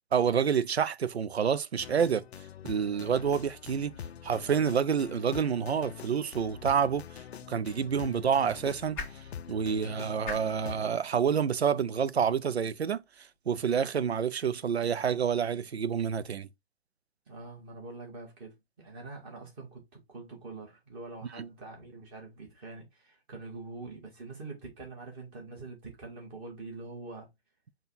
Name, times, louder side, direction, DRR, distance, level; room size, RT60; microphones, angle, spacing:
voice 1, 0.1-2.2 2.6-4.0 4.2-7.2 7.5-9.0 9.5-13.0 13.5-16.5 21.4-21.5, right 7 dB, 90° right, 0.5 m, -28 dB
sound 1, 1.8-10.9, left 8 dB, 80° left, 0.5 m, -45 dB
sound 2, 7.1-13.4, left 4 dB, 5° left, 0.5 m, -48 dB
voice 2, 17.3-27.3, right 3 dB, 20° right, 1.6 m, -44 dB
5.4 x 2.4 x 4.0 m
figure-of-eight pair, 145°, 31 cm